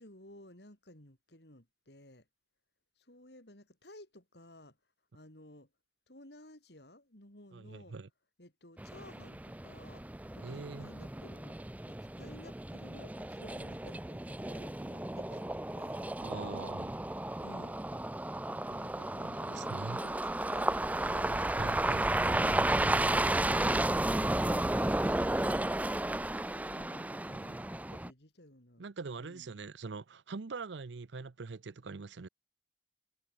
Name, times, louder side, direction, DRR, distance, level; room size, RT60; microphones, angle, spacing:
voice 1, 0.0-2.3 3.0-4.8 5.1-5.7 6.1-8.0 8.4-10.0 10.3-11.6 11.8-16.1 17.4-17.8 18.6-20.7 21.0-21.9 26.5-28.8 29.2-29.5, left 1 dB, 65° left, 5.1 m, -55 dB
voice 2, 7.5-8.1 10.4-10.9 16.2-17.0 19.2-20.0 21.3-22.4 28.8-32.3, right 4 dB, 80° right, 0.7 m, -43 dB
sound 1, 8.8-28.1, right 1 dB, 10° right, 0.5 m, -33 dB
head